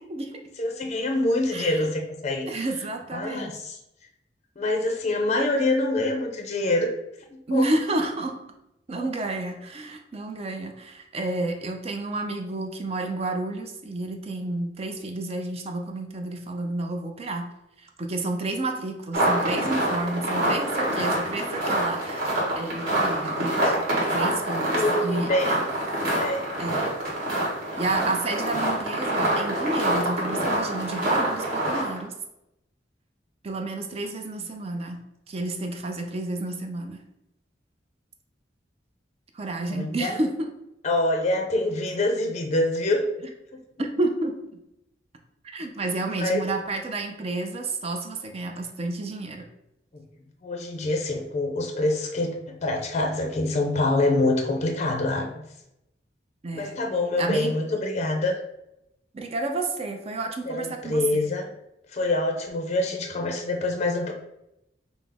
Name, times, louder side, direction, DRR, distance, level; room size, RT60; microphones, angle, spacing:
voice 1, 0.0-0.4 1.5-1.9 2.5-3.5 7.5-8.4 8.9-17.5 17.8-25.3 26.6-26.9 27.8-32.1 33.4-35.0 35.3-37.0 39.3-40.5 43.8-44.4 45.4-49.5 56.4-56.7 57.2-57.5 59.1-61.2, right 2 dB, 35° right, 4 dB, 0.5 m, -30 dB
voice 2, 0.6-2.6 3.1-3.8 4.6-6.9 7.3-7.7 9.0-9.1 24.7-25.7 26.2-26.5 39.7-40.2 40.8-43.3 46.1-46.5 50.4-55.3 56.5-58.4 60.5-61.5 61.9-64.1, left 2 dB, 40° left, 3 dB, 0.5 m, -25 dB
sound 1, 19.1-32.1, right 1 dB, 55° right, 1.4 m, -26 dB
5.4 x 2.0 x 3.5 m, 0.85 s
head